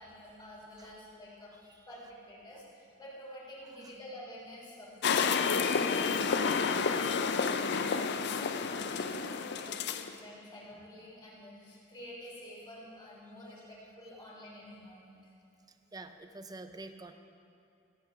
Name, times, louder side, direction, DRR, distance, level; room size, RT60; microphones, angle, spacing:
voice 1, 0.0-15.3, left 1 dB, 25° left, -6 dB, 3.3 m, -49 dB
sound 1, 5.0-10.1, left 5 dB, 60° left, 0.5 m, -30 dB
voice 2, 15.9-17.1, right 2 dB, 20° right, 8 dB, 0.6 m, -46 dB
15.0 x 8.6 x 5.0 m, 2.5 s
head